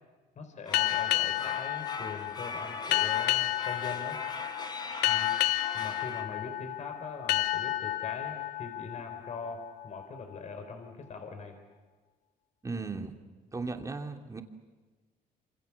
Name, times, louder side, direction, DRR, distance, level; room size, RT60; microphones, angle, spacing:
voice 1, 0.4-4.2 5.0-5.3 5.7-11.6, left 4 dB, 45° left, 6 dB, 4.2 m, -42 dB
sound 1, 0.6-6.2, left 3 dB, 25° left, 3.6 m, -41 dB
sound 2, 0.7-10.0, left 15 dB, 85° left, 1.2 m, -31 dB
voice 2, 12.6-13.2 13.5-14.4, right 3 dB, 20° right, 4 dB, 2.9 m, -36 dB
27.5 x 27.0 x 7.2 m, 1.3 s
cardioid pair, 110°, 17 cm